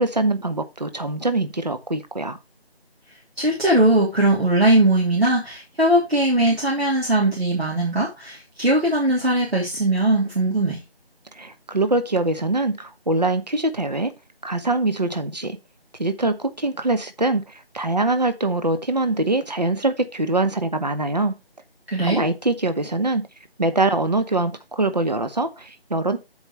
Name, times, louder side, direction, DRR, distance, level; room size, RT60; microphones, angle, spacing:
voice 1, 0.0-2.4 11.4-14.1 14.4-15.6 16.0-21.4 22.0-23.2 23.6-26.2, right 2 dB, 40° right, 0.9 m, -23 dB
voice 2, 3.4-10.8 21.9-22.2, right 1 dB, 75° right, 3.2 m, -20 dB
14.5 x 4.9 x 3.2 m
figure-of-eight pair, 165°, 32 cm